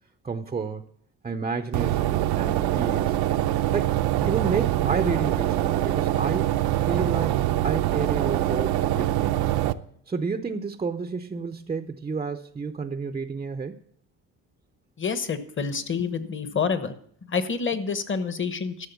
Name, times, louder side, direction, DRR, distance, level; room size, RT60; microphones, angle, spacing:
voice 1, 0.2-0.8 1.2-3.2 3.7-4.0 4.2-6.5 6.8-9.4 10.1-13.8, right 5 dB, 15° right, 8 dB, 0.5 m, -30 dB
sound 1, 1.7-9.7, right 13 dB, 75° right, 0.6 m, -24 dB
voice 2, 15.0-16.9 17.2-18.9, left 5 dB, 30° left, 11 dB, 1.1 m, -28 dB
13.0 x 6.5 x 6.9 m, 0.64 s
cardioid pair, 125°, 38 cm